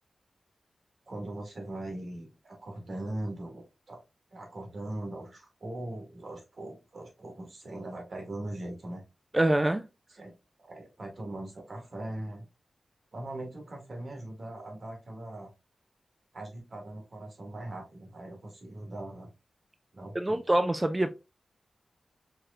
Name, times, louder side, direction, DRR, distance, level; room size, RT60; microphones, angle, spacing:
voice 1, 1.1-4.0 4.3-9.0 10.1-10.3 10.6-12.5 13.1-15.5 16.3-19.3 19.9-20.4, right 1 dB, 55° right, 1.9 m, -40 dB
voice 2, 9.3-9.8 20.1-21.1, right 1 dB, 20° right, 0.4 m, -25 dB
4.7 x 3.1 x 2.4 m
wide cardioid pair, 90°, 0 cm